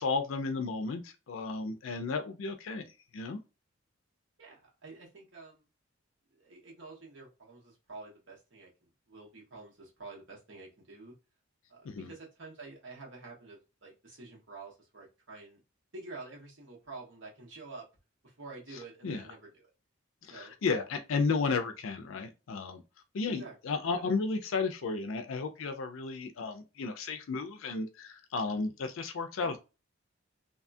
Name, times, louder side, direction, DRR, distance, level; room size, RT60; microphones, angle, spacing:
voice 1, 0.0-2.8 3.1-3.4 11.8-12.1 19.0-19.3 20.2-22.8 23.1-29.6, left 4 dB, 75° left, 0.4 m, -33 dB
voice 2, 4.4-5.6 6.4-11.1 11.7-15.6 15.9-17.9 18.2-19.7 20.3-20.8 23.3-23.6 29.4-29.6, right 3 dB, 65° right, 1.2 m, -48 dB
2.7 x 2.3 x 2.5 m
head